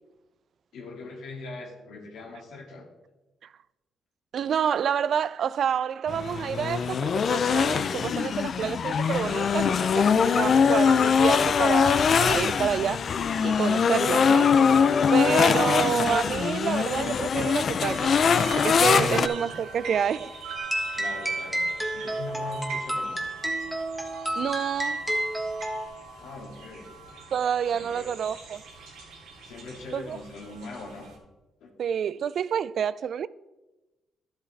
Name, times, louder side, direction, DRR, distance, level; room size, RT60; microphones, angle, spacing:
voice 1, 0.7-2.9 19.0-19.2 19.4-19.5 20.9-21.6 21.9-23.2 26.1-26.9 27.7-28.1 29.4-31.1 31.6-31.7, left 3 dB, 80° left, 2.1 m, -41 dB
voice 2, 4.3-13.0 13.4-14.5 15.1-18.2 18.6-20.3 24.4-25.0 27.3-28.6 29.9-30.2 31.8-33.3, right 8 dB, 60° right, 0.3 m, -28 dB
sound 1, 6.1-19.3, left 6 dB, 50° left, 0.5 m, -22 dB
sound 2, 17.9-31.2, right 4 dB, 90° right, 2.6 m, -42 dB
sound 3, 20.6-25.9, right 1 dB, 5° right, 1.3 m, -30 dB
11.5 x 7.8 x 3.4 m
cardioid pair, 90°, 0 cm